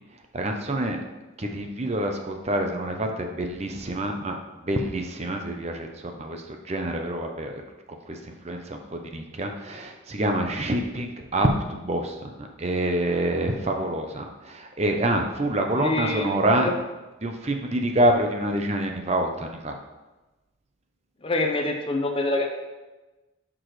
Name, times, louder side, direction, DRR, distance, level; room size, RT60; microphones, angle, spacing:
voice 1, 0.3-1.0 1.4-4.4 4.6-7.6 7.9-16.7 17.2-19.7, right 1 dB, 30° right, 4 dB, 0.7 m, -27 dB
voice 2, 15.8-16.7 21.2-22.5, left 2 dB, 25° left, 3 dB, 0.8 m, -26 dB
11.5 x 6.2 x 3.2 m, 1.2 s
head